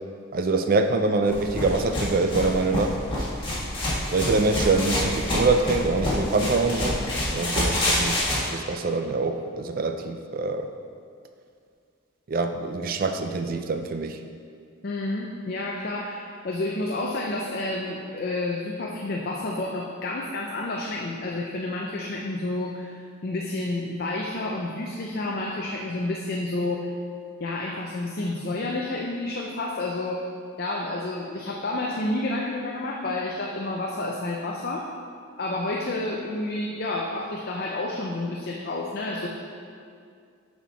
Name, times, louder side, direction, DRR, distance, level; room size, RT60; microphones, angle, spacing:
voice 1, 0.3-3.0 4.1-7.0 7.3-10.7 12.3-14.2, right 3 dB, 40° right, 7 dB, 0.4 m, -25 dB
sound 1, 1.3-8.4, left 1 dB, 25° left, 1.6 m, -27 dB
voice 2, 14.8-26.9 27.4-30.2 30.6-34.9 35.4-39.3, left 2 dB, 45° left, -1 dB, 0.5 m, -30 dB
7.2 x 4.4 x 5.6 m, 2.3 s
head